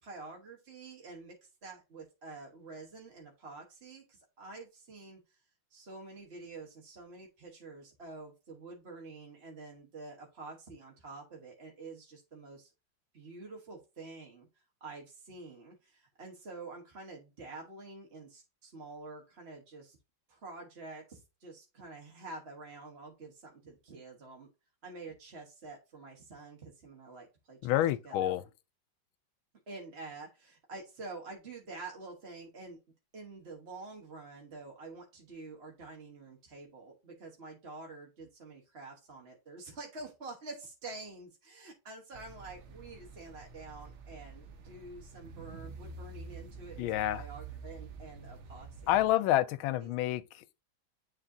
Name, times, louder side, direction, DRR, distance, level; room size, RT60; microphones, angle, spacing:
voice 1, 0.0-5.4 5.7-12.7 13.1-14.5 14.8-20.0 20.3-24.5 24.8-28.3 29.7-32.8 33.1-48.7 49.0-49.1 49.8-50.2, right 3 dB, 35° right, 1.3 m, -48 dB
voice 2, 27.6-28.4 46.8-47.2 48.9-50.6, left 13 dB, 85° left, 1.4 m, -29 dB
sound 1, 42.1-49.1, right 5 dB, 55° right, 0.8 m, -48 dB
9.8 x 3.7 x 2.7 m
omnidirectional pair, 2.2 m